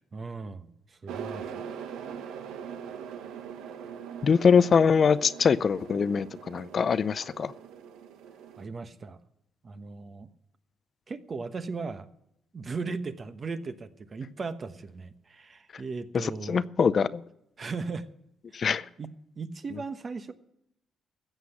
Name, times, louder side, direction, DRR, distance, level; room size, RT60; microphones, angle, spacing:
voice 1, 0.1-0.7 1.0-1.5 8.6-9.2 9.6-10.3 11.1-12.1 12.5-16.6 17.6-18.1 18.5-20.3, right 4 dB, 40° right, 10 dB, 1.2 m, -37 dB
sound 1, 1.1-8.7, right 7 dB, 90° right, 1.0 m, -41 dB
voice 2, 4.2-7.5 16.1-17.2 18.5-18.9, left 6 dB, 45° left, 15 dB, 0.5 m, -23 dB
14.5 x 8.0 x 8.6 m, 0.79 s
cardioid pair, 90°, 0 cm